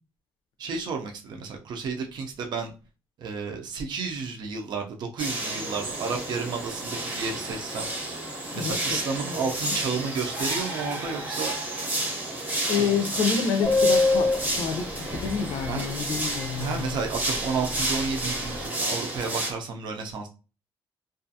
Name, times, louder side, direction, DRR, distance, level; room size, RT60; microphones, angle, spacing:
voice 1, 0.6-2.7 3.2-7.9 8.5-11.6 12.7-13.0 15.7-15.9 16.6-20.3, right 5 dB, 55° right, 3 dB, 0.5 m, -32 dB
sound 1, 5.2-19.5, right 1 dB, 20° right, 0.7 m, -31 dB
voice 2, 8.6-9.0 9.2-9.7 12.7-14.3 14.5-17.0, left 6 dB, 85° left, 6 dB, 0.5 m, -28 dB
Subway metro underground, 13.6-15.8 16.1-16.2 16.4-16.6 16.9-17.4 17.6-18.6, left 3 dB, 15° left, 0.4 m, -24 dB
2.4 x 2.3 x 2.7 m, 0.32 s
cardioid pair, 170°, 9 cm